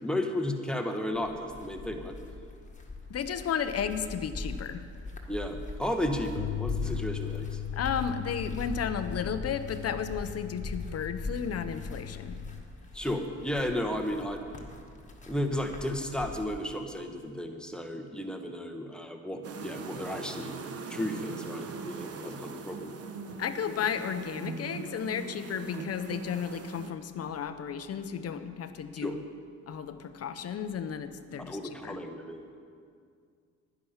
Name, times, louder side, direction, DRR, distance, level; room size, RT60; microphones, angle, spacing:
voice 1, 0.0-2.1 5.3-7.6 12.9-14.4 15.3-20.6 20.9-22.9 29.0-29.2 31.5-32.5, left 1 dB, 5° left, 4 dB, 1.2 m, -33 dB
sound 1, 1.1-16.6, left 2 dB, 25° left, 1.7 m, -41 dB
voice 2, 3.1-4.8 7.7-12.4 23.4-29.2 29.7-32.0, left 7 dB, 55° left, 10 dB, 0.8 m, -33 dB
Bass guitar, 6.4-12.6, left 14 dB, 85° left, 0.5 m, -39 dB
sound 2, 19.4-26.9, right 4 dB, 50° right, 1.0 m, -41 dB
10.5 x 10.5 x 5.8 m, 2.2 s
cardioid pair, 90°, 30 cm